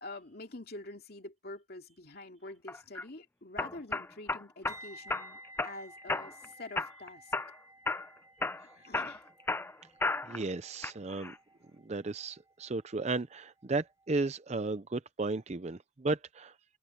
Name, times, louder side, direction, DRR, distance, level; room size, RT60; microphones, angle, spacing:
voice 1, 0.0-7.3 8.4-9.2, left 2 dB, 55° left, 2.6 m, -47 dB
sound 1, 2.7-3.0 3.6-4.8 5.1-5.7 6.1-6.5 6.8-7.5 7.9-8.1 8.4-10.4 10.8-11.3, left 3 dB, 10° left, 0.5 m, -33 dB
sound 2, 4.7-13.6 13.9-14.2, right 1 dB, 15° right, 6.3 m, -54 dB
voice 2, 10.2-11.3 11.9-16.5, right 3 dB, 35° right, 0.6 m, -34 dB
head